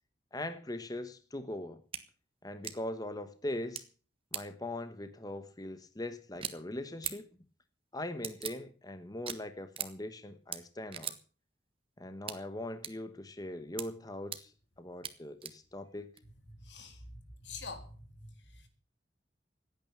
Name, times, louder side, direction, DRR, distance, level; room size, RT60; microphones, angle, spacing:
voice 1, 0.3-1.8 2.4-3.8 4.3-7.3 7.9-11.1 12.0-14.5 14.8-16.1, left 1 dB, 20° left, 1.1 m, -41 dB
sound 1, 1.9-2.0 2.6-2.7 3.7-3.8 4.3-4.4 6.3-6.5 7.0-7.1 8.2-8.5 9.3-9.4 9.8-9.9 10.5-10.6 10.9-11.2 12.3-12.4 12.8-12.9 13.8-13.9 14.3-14.4 15.0-15.1 15.4-15.5 16.2-16.3, right 8 dB, 30° right, 1.3 m, -38 dB
voice 2, 16.5-18.7, left 3 dB, 90° left, 3.5 m, -47 dB
16.5 x 9.2 x 7.4 m
head